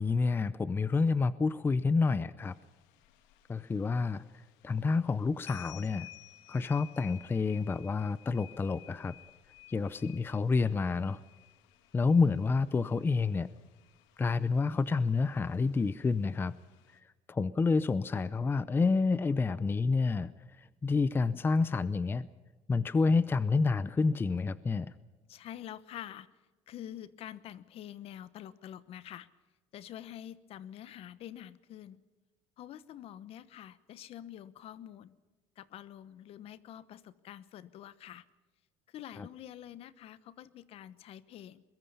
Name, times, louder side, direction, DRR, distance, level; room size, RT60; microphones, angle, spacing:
voice 1, 0.0-2.5 3.5-4.2 4.6-6.1 6.5-9.1 9.7-11.2 11.9-13.5 14.2-16.5 17.3-20.3 20.8-22.3 22.7-24.9 39.2-39.3, left 4 dB, 15° left, 16 dB, 0.6 m, -28 dB
sound 1, 2.4-17.0, left 15 dB, 90° left, 1.7 m, -56 dB
voice 2, 25.3-26.3 26.7-29.3 29.7-32.0 32.6-35.1 35.6-38.2 38.9-41.6, left 11 dB, 55° left, 17 dB, 1.0 m, -47 dB
22.5 x 22.0 x 5.6 m, 1.3 s
cardioid pair, 125°, 12 cm